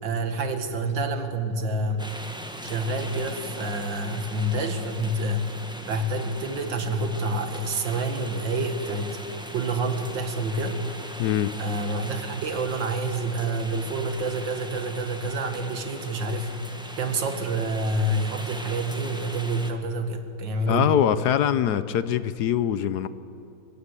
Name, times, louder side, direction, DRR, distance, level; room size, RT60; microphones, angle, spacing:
voice 1, 0.0-2.1 2.6-5.5 5.8-9.2 9.5-11.1 11.6-20.9, right 2 dB, 85° right, 7 dB, 2.4 m, -28 dB
sound 1, 2.0-19.7, equal, 5° right, 1.2 m, -40 dB
voice 2, 11.2-11.5 20.7-23.1, left 10 dB, 70° left, 14 dB, 1.2 m, -23 dB
24.5 x 15.0 x 9.8 m, 2.7 s
omnidirectional pair, 2.0 m